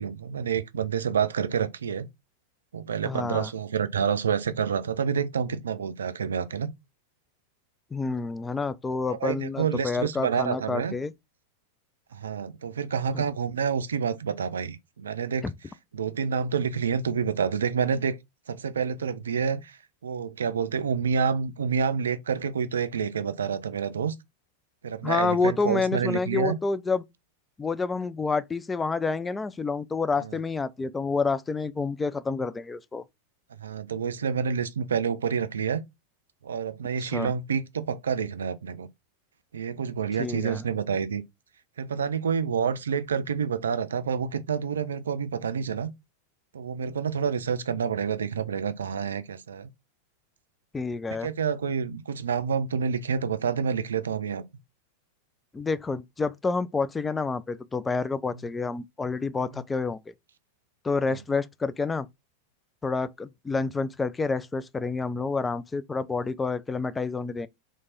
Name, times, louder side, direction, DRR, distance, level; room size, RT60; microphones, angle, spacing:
voice 1, 0.0-2.1 2.7-6.7 9.2-11.0 12.1-15.5 15.9-18.2 18.5-24.1 24.8-26.6 30.2-30.4 33.6-35.8 36.4-38.9 39.5-41.2 41.8-45.9 46.5-49.7 51.1-54.4 59.4-59.5 61.1-61.2, right 6 dB, 70° right, 0.4 m, -28 dB
voice 2, 3.0-3.5 7.9-11.1 13.1-13.2 15.4-15.5 25.0-27.0 27.6-33.0 37.0-37.3 40.2-40.6 50.7-51.3 55.5-60.1 60.8-62.1 62.8-67.5, left 4 dB, 15° left, 0.4 m, -28 dB
3.3 x 3.2 x 4.0 m
figure-of-eight pair, 90°, 0 cm